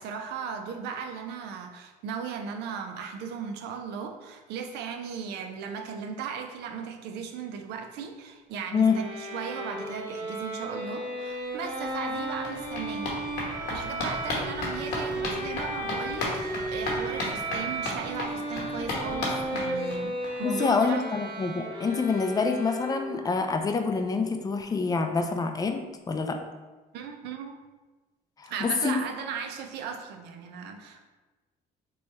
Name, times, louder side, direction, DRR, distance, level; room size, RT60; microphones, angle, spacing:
voice 1, 0.0-13.2 13.7-20.1 20.4-21.0 26.9-27.6 28.5-31.0, right 6 dB, 80° right, 5 dB, 0.5 m, -37 dB
Bowed string instrument, 8.8-23.3, right 1 dB, 30° right, 0.9 m, -34 dB
sound 1, 11.5-11.6 11.8-20.3 20.6-20.7 20.9-21.0 21.3-21.4, left 2 dB, 85° left, 1.0 m, -35 dB
voice 2, 20.4-25.8 26.1-26.4 28.4-29.0, left 4 dB, 20° left, 5 dB, 0.3 m, -26 dB
3.1 x 2.3 x 4.1 m, 1.2 s
cardioid pair, 110°, 17 cm